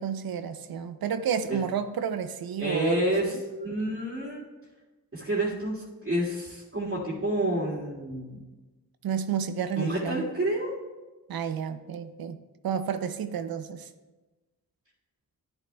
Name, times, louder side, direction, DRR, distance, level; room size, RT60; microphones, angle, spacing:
voice 1, 0.0-3.3 9.0-10.2 11.3-12.4 12.6-13.9, right 7 dB, 80° right, 10 dB, 0.5 m, -31 dB
voice 2, 2.6-4.4 5.1-8.4 9.8-10.7, right 1 dB, 35° right, -8 dB, 2.1 m, -29 dB
11.0 x 10.0 x 2.2 m, 1.2 s
cardioid pair, 60°, 36 cm